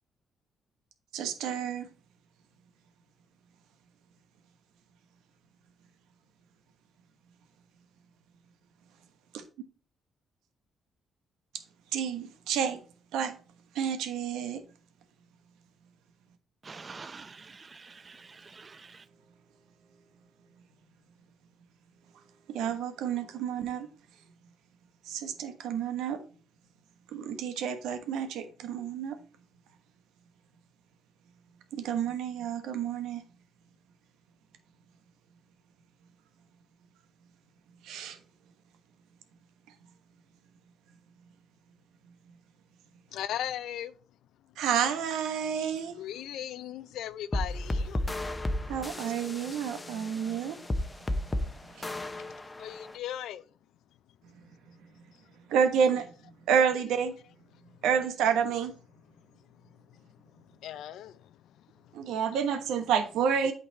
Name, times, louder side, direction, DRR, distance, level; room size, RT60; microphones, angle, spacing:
voice 1, 1.1-1.9 9.3-9.4 11.9-12.8 13.1-13.4 13.7-14.6 22.5-23.9 25.0-26.2 27.1-29.2 31.7-33.2 37.8-38.2 44.6-46.0 48.7-50.6 51.2-51.3 51.7-51.9 55.5-57.2 57.8-58.7 61.9-63.5, right 7 dB, 90° right, 1.2 m, -29 dB
voice 2, 16.6-18.9, right 4 dB, 35° right, 0.6 m, -47 dB
voice 3, 43.1-43.9 46.0-48.0 52.6-53.5 59.6-62.0, left 11 dB, 80° left, 0.5 m, -39 dB
sound 1, 47.3-53.0, left 1 dB, 20° left, 0.8 m, -33 dB
8.5 x 4.0 x 4.3 m
cardioid pair, 90°, 0 cm